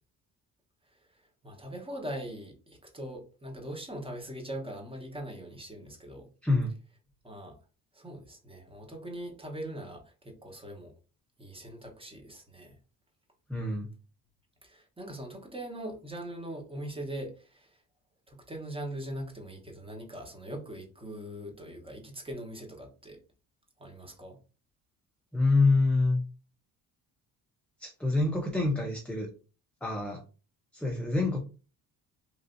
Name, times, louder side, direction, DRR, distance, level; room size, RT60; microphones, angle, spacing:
voice 1, 1.1-6.3 7.2-7.6 7.9-10.9 11.4-12.8 14.6-17.8 18.3-23.2 23.8-24.4, right 1 dB, 15° right, 1.0 m, -41 dB
voice 2, 6.4-6.7 13.5-13.9 25.3-26.2 27.8-29.3 29.8-30.2 30.7-31.4, left 3 dB, 5° left, 0.5 m, -26 dB
3.1 x 2.6 x 2.6 m
cardioid pair, 105°, 36 cm